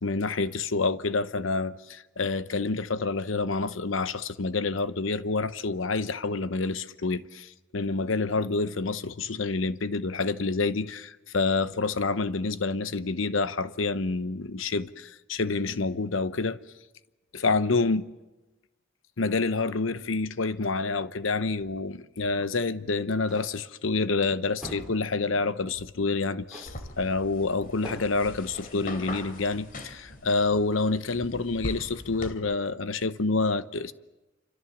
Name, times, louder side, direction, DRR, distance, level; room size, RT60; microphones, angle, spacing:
voice 1, 0.0-16.6 17.3-18.1 19.2-33.9, left 3 dB, 75° left, 0.9 m, -28 dB
sound 1, 23.3-23.7 24.6-25.1 26.5-26.9 27.8-28.3 29.1-29.4, right 1 dB, 5° right, 5.2 m, -43 dB
sound 2, 26.7-32.3, left 2 dB, 45° left, 2.9 m, -41 dB
27.5 x 25.5 x 7.2 m
head